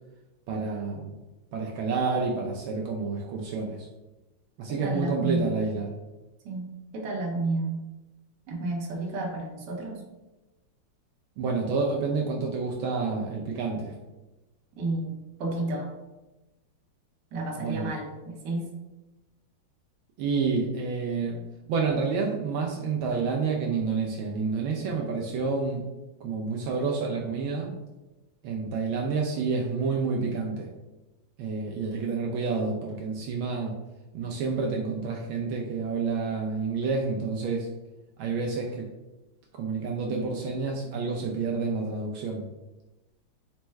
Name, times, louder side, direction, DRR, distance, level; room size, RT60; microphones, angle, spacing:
voice 1, 0.5-1.2 1.5-3.9 4.6-5.9 11.4-13.9 17.6-18.0 20.2-21.4 21.7-25.8 26.2-27.8 28.4-30.7 31.4-33.7 34.1-37.7 38.2-38.9 39.5-42.5, right 4 dB, 80° right, -1 dB, 1.3 m, -29 dB
voice 2, 4.8-5.4 6.4-6.7 6.9-7.8 8.5-10.0 14.8-15.1 15.4-15.9 17.3-18.6, right 2 dB, 60° right, 0 dB, 1.3 m, -31 dB
4.3 x 2.1 x 4.4 m, 1.0 s
omnidirectional pair, 2.3 m